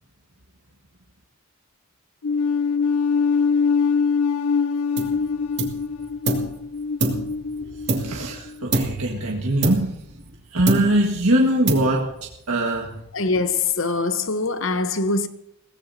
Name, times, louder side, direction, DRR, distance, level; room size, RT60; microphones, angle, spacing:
sound 1, 2.2-8.6, left 5 dB, 80° left, 0.5 m, -23 dB
sound 2, 5.0-5.2 5.6-6.6 7.0-8.3 8.7-9.1 9.6-10.4 10.7-11.2 11.7-12.2, right 2 dB, 50° right, 2.6 m, -26 dB
voice 1, 7.9-9.9 10.5-13.0, right 1 dB, 90° right, 1.7 m, -22 dB
voice 2, 13.1-15.3, left 3 dB, 60° left, 1.0 m, -23 dB
22.5 x 17.5 x 2.8 m
head